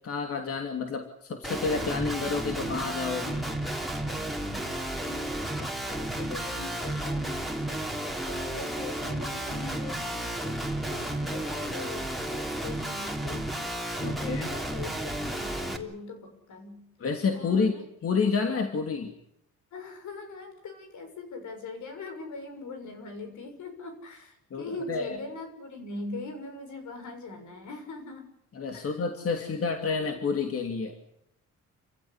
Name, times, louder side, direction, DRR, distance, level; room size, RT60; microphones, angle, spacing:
voice 1, 0.0-3.5 14.0-14.5 17.0-17.7 18.0-19.1 24.5-25.2 28.5-30.9, left 5 dB, 50° left, 4 dB, 3.0 m, -29 dB
Guitar, 1.4-15.8, right 1 dB, ahead, 3.4 m, -32 dB
voice 2, 4.5-5.3 5.6-7.7 8.3-13.4 14.0-16.8 17.3-17.8 19.7-28.3 28.7-29.0 29.5-29.6, left 3 dB, 75° left, 6 dB, 7.0 m, -41 dB
28.0 x 15.5 x 10.0 m, 0.79 s
cardioid pair, 90°, 30 cm